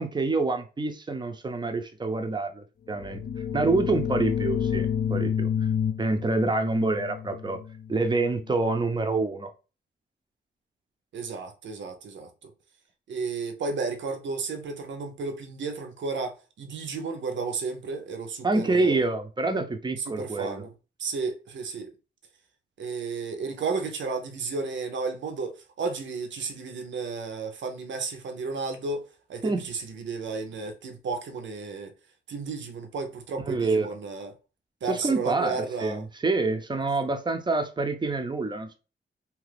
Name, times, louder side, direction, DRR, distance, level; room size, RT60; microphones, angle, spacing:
voice 1, 0.0-3.2 3.5-5.5 6.0-7.6 7.9-9.5 18.4-20.7 29.4-29.6 33.5-34.0 34.9-38.8, right 3 dB, 25° right, 0.5 m, -27 dB
sound 1, 2.9-8.5, left 8 dB, 55° left, 0.4 m, -30 dB
voice 2, 11.1-12.5 13.1-19.0 20.1-20.7 21.0-21.9 22.8-29.0 29.3-31.9 32.3-34.4 34.8-36.0, right 4 dB, 90° right, 0.6 m, -33 dB
2.8 x 2.4 x 3.3 m
wide cardioid pair, 125°, 19 cm